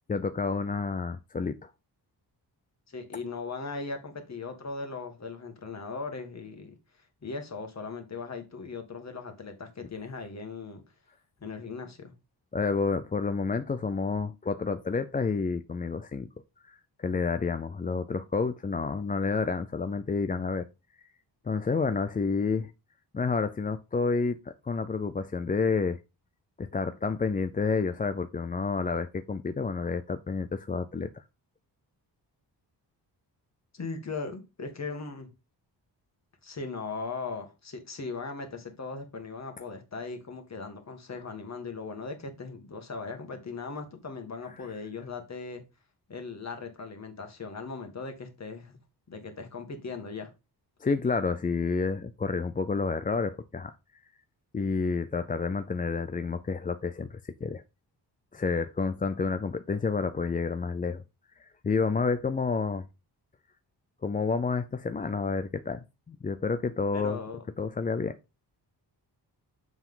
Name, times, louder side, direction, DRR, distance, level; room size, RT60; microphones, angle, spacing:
voice 1, 0.1-1.7 12.5-16.3 16.7-20.6 21.5-22.7 23.1-26.0 26.6-31.1 50.8-53.7 54.5-57.6 58.3-61.0 61.6-62.9 64.0-67.2 67.6-68.2, left 4 dB, 20° left, 0.4 m, -29 dB
voice 2, 2.9-6.7 7.2-10.8 11.4-12.1 33.7-35.3 36.4-45.6 46.1-48.8 49.1-50.3 66.9-67.4, left 4 dB, 40° left, 1.8 m, -38 dB
7.1 x 5.9 x 3.8 m
wide cardioid pair, 135°, 42 cm